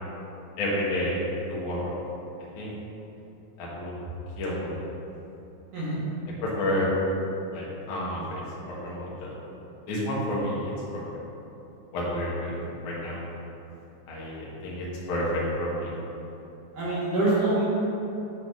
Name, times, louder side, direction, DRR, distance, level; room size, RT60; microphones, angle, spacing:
voice 1, 0.6-1.2 1.5-1.9 2.6-2.7 3.6-3.9 4.4-4.8 6.4-6.9 7.5-9.3 9.9-11.0 11.9-13.2 14.1-15.9, left 1 dB, 55° left, -6 dB, 1.6 m, -30 dB
voice 2, 16.7-17.7, right 2 dB, 50° right, -10 dB, 2.4 m, -25 dB
7.9 x 3.3 x 5.4 m, 3.0 s
omnidirectional pair, 4.1 m